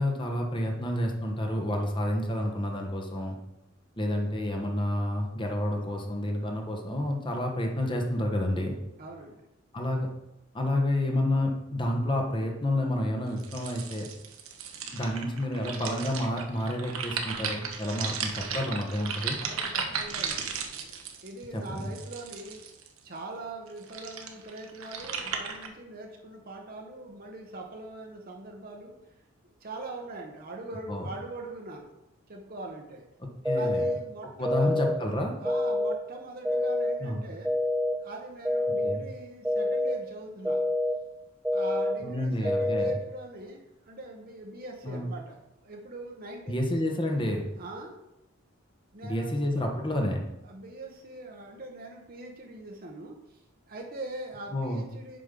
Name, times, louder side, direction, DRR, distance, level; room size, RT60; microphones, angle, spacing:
voice 1, 0.0-3.4 4.0-8.8 9.7-10.1 10.5-14.1 14.9-19.4 21.5-21.9 30.9-31.1 33.2-33.8 34.4-35.3 37.0-37.2 38.8-39.0 42.0-42.9 44.8-45.1 46.5-47.5 49.0-50.3 54.5-54.9, left 1 dB, 25° left, 1 dB, 1.0 m, -29 dB
voice 2, 9.0-9.4 19.4-20.5 21.2-22.6 23.0-28.9 29.6-31.9 32.3-33.0 33.5-34.7 35.4-37.5 38.0-40.6 41.5-46.6 47.6-48.0 48.9-49.6 50.4-53.4 53.7-55.2, right 2 dB, 45° right, 1 dB, 1.0 m, -42 dB
sound 1, 13.4-23.0 23.7-25.7, right 6 dB, 85° right, 1.1 m, -36 dB
sound 2, 33.4-33.9 34.4-34.9 35.4-35.9 36.4-36.9 37.4-37.9 38.4-38.9 39.4-39.9 40.4-40.9 41.4-41.9 42.4-42.9, left 1 dB, 5° right, 0.3 m, -27 dB
7.7 x 5.4 x 5.2 m, 0.90 s
head